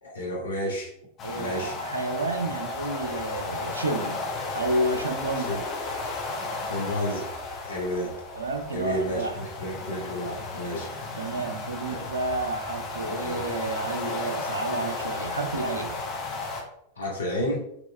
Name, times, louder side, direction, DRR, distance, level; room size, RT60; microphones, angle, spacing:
voice 1, 0.0-0.9 1.4-1.8 5.4-5.6 6.6-7.3 7.6-8.2 8.7-10.9 11.9-12.0 13.1-13.4 17.0-17.6, equal, 75° left, -3 dB, 1.2 m, -31 dB
sound 1, 1.2-16.6, left 3 dB, 30° left, 1.0 m, -34 dB
voice 2, 1.2-4.2 4.5-5.5 8.3-9.3 11.2-16.0, right 2 dB, 75° right, 5 dB, 0.6 m, -30 dB
6.1 x 3.0 x 2.2 m, 0.74 s
figure-of-eight pair, 90°, 0 cm